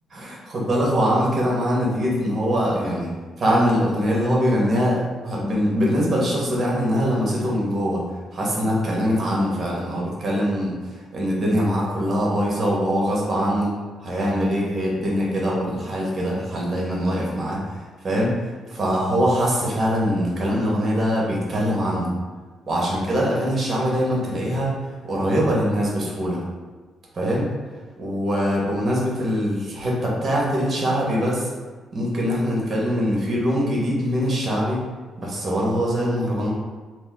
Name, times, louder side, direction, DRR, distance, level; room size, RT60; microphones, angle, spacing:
voice 1, 0.1-3.1 3.4-8.0 8.3-13.7 14.0-17.6 18.0-18.4 18.7-22.1 22.7-24.7 25.1-26.4 27.1-27.5 28.0-31.5 31.9-34.8 35.2-36.5, equal, 40° right, -4 dB, 1.2 m, -23 dB
2.9 x 2.5 x 3.6 m, 1.4 s
cardioid pair, 90°, 0 cm